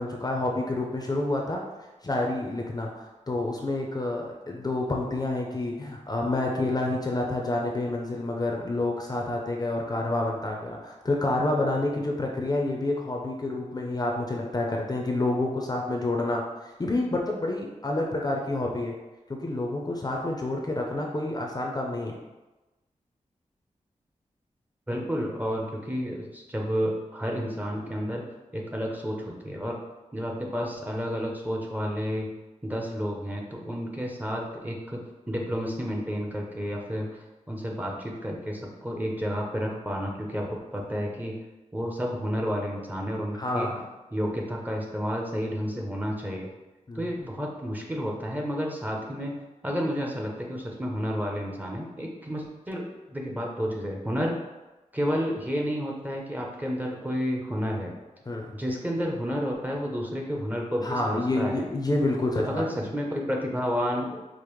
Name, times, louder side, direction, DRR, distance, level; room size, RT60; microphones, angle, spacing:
voice 1, 0.0-1.6 2.0-18.9 19.3-22.2 43.3-43.8 46.9-47.1 58.3-58.6 60.8-62.9, left 2 dB, 30° left, 0 dB, 0.5 m, -28 dB
voice 2, 24.9-28.2 28.5-29.8 30.1-32.3 32.6-35.0 35.3-41.3 41.7-43.7 44.1-46.5 46.9-49.3 49.6-54.4 54.9-57.9 58.5-61.7 62.4-64.2, equal, 15° right, -1 dB, 0.6 m, -31 dB
5.0 x 2.0 x 3.1 m, 1.1 s
wide cardioid pair, 85°, 13 cm